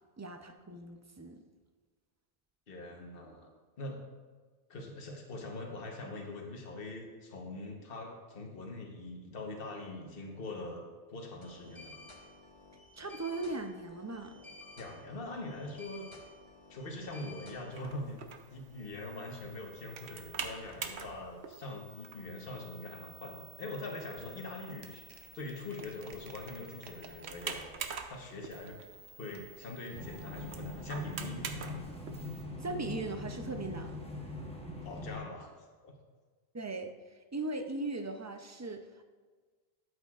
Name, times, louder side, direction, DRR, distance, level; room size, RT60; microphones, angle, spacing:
voice 1, 0.2-1.4 13.0-14.4 32.6-34.0 36.5-39.0, right 2 dB, 25° right, 6 dB, 0.4 m, -39 dB
voice 2, 2.7-3.5 3.8-4.0 4.7-10.8 11.1-11.9 14.8-16.1 16.7-18.2 18.5-25.0 25.3-27.6 28.1-28.8 29.2-31.8 34.8-35.9, left 2 dB, 60° left, 2 dB, 1.3 m, -43 dB
sound 1, 11.4-17.9, left 2 dB, 30° left, 1.3 m, -53 dB
sound 2, 17.7-32.4, right 6 dB, 85° right, 1.0 m, -46 dB
sound 3, 29.9-35.1, left 2 dB, 5° left, 1.0 m, -42 dB
12.5 x 8.0 x 2.4 m, 1.4 s
omnidirectional pair, 1.1 m